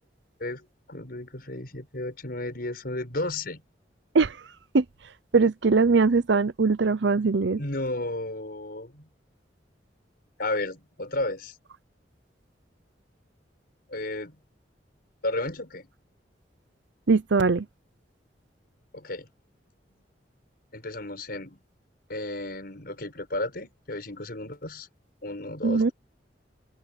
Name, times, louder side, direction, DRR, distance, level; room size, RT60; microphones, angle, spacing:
voice 1, 0.4-3.6 7.6-9.1 10.4-11.6 13.9-14.4 15.2-15.9 18.9-19.3 20.7-21.6 22.1-24.9 25.2-25.9, left 2 dB, 60° left, 5.9 m, -33 dB
voice 2, 5.3-7.6 17.1-17.7 25.6-25.9, right 4 dB, 80° right, 0.7 m, -21 dB
head